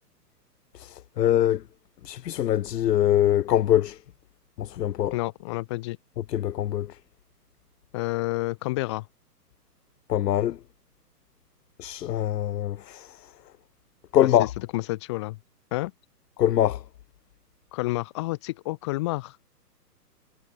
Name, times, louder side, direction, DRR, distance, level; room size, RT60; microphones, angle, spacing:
voice 1, 1.2-1.6 2.0-4.0 4.6-5.2 6.3-6.9 10.1-10.6 11.8-13.1 14.1-14.5 16.4-16.8, left 11 dB, 80° left, 0.7 m, -23 dB
voice 2, 5.1-6.0 7.9-9.1 14.2-14.5 14.7-15.4 15.7-15.9 17.7-19.4, left 20 dB, 15° left, 1.1 m, -29 dB
hypercardioid pair, 165°, 48 cm